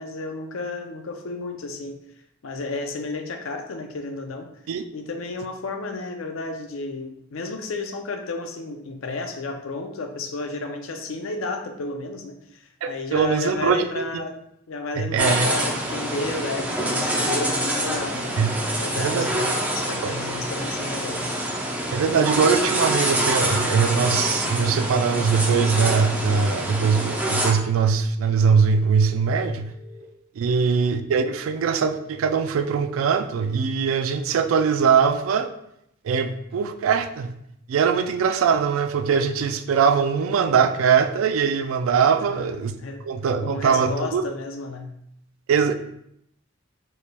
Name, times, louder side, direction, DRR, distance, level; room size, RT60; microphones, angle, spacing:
voice 1, 0.0-2.0 2.4-4.5 4.9-14.3 14.7-18.3 18.8-21.4 30.5-30.8 42.2-42.6 42.8-43.0 43.4-44.9, left 3 dB, 80° left, 5 dB, 0.5 m, -32 dB
voice 2, 12.8-14.1 15.0-15.5 18.4-18.6 19.0-19.3 20.0-20.1 21.9-29.7 30.4-35.5 36.0-37.3 37.7-42.7 43.1-44.3 45.5-45.7, right 6 dB, 80° right, 8 dB, 0.3 m, -21 dB
sound 1, 15.2-27.5, right 1 dB, 10° right, 0.5 m, -26 dB
sound 2, 20.8-21.2 23.2-24.2 26.1-27.1 29.0-30.0 32.0-32.9 34.9-35.3, left 4 dB, 40° left, 0.9 m, -49 dB
4.3 x 3.2 x 2.2 m, 0.76 s
head